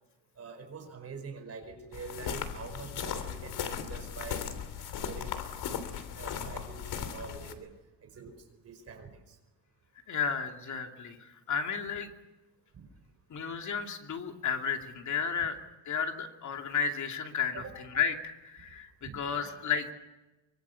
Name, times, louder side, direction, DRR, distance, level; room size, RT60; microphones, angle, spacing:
voice 1, 0.4-4.6 5.0-5.3 6.1-7.7 8.0-8.3 8.6-9.4 12.7-12.9 17.5-17.7 19.0-19.5, right 4 dB, 35° right, 6 dB, 5.1 m, -45 dB
sound 1, 1.9-7.5, left 8 dB, 60° left, 3.1 m, -37 dB
voice 2, 10.1-12.1 13.3-15.6 15.9-19.9, left 6 dB, 40° left, 4 dB, 2.7 m, -33 dB
24.5 x 24.0 x 7.1 m, 1.1 s
cardioid pair, 145°, 44 cm